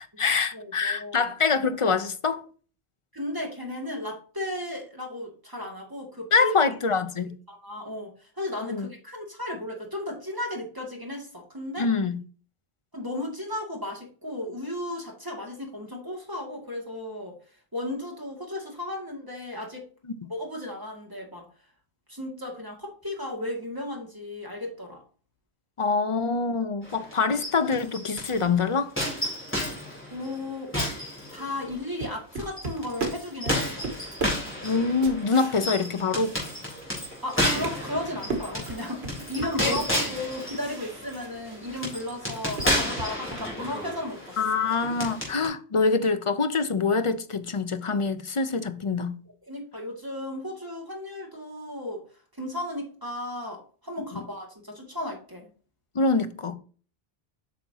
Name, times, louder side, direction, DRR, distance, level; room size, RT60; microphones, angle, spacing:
voice 1, 0.0-2.4 6.3-7.3 8.7-8.9 11.8-12.2 25.8-28.9 34.6-36.3 39.7-39.8 44.4-49.2 54.1-54.2 55.9-56.6, left 4 dB, 35° left, 0.6 m, -25 dB
voice 2, 0.5-1.3 3.1-6.5 7.5-11.9 12.9-17.4 17.7-19.9 20.3-21.5 22.1-25.0 30.1-30.9 31.3-33.9 37.2-44.4 49.5-52.0 52.3-55.5, left 1 dB, 20° right, 2.2 m, -35 dB
sound 1, 26.8-28.4 29.0-31.8 32.4-45.5, left 1 dB, 10° left, 3.6 m, -32 dB
sound 2, 31.7-37.0 37.3-41.9 42.2-43.6, right 3 dB, 85° right, 1.7 m, -36 dB
8.4 x 5.8 x 2.8 m
omnidirectional pair, 1.0 m